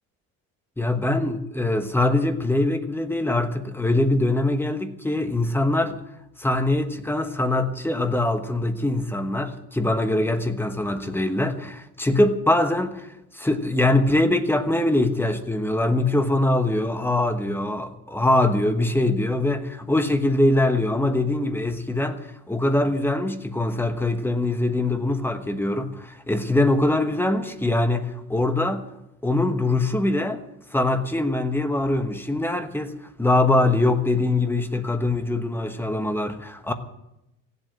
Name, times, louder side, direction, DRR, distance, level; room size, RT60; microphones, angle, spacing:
voice 1, 0.8-6.0 6.4-13.1 13.3-22.2 22.5-28.8 29.2-30.4 30.7-32.9 33.2-36.7, left 2 dB, 5° left, 1.2 m, -23 dB
16.0 x 8.0 x 8.9 m
cardioid pair, 120°, 32 cm